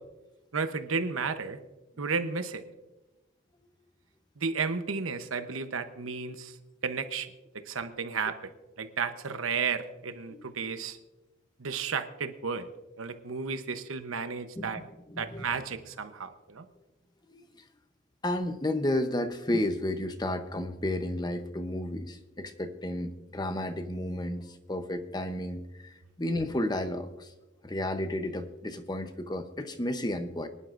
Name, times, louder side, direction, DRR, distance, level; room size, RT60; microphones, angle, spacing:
voice 1, 0.5-1.6 2.0-2.6 4.4-6.5 6.8-8.5 8.8-11.0 11.6-12.7 13.0-14.8 15.2-16.6, right 5 dB, 85° right, 9 dB, 0.9 m, -33 dB
voice 2, 14.6-15.5 17.3-17.4 18.2-27.3 27.6-30.5, left 1 dB, 20° left, 9 dB, 0.8 m, -32 dB
23.5 x 11.0 x 2.6 m, 1.1 s
head